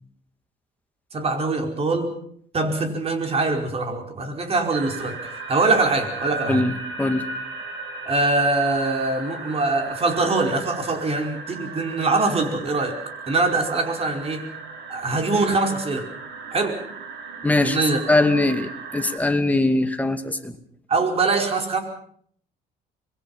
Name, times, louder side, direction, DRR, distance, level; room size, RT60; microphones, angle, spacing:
voice 1, 1.1-2.1 2.5-6.6 8.0-13.0 13.3-14.5 14.9-16.1 16.5-16.8 17.6-18.0 20.9-21.8, right 3 dB, 35° right, 4 dB, 5.0 m, -23 dB
sound 1, 4.7-19.2, right 3 dB, 90° right, 6.0 m, -36 dB
voice 2, 6.5-7.3 17.4-17.8 18.1-20.5, left 2 dB, 10° left, 6 dB, 2.4 m, -21 dB
26.0 x 22.0 x 5.7 m, 0.63 s
cardioid pair, 110°, 17 cm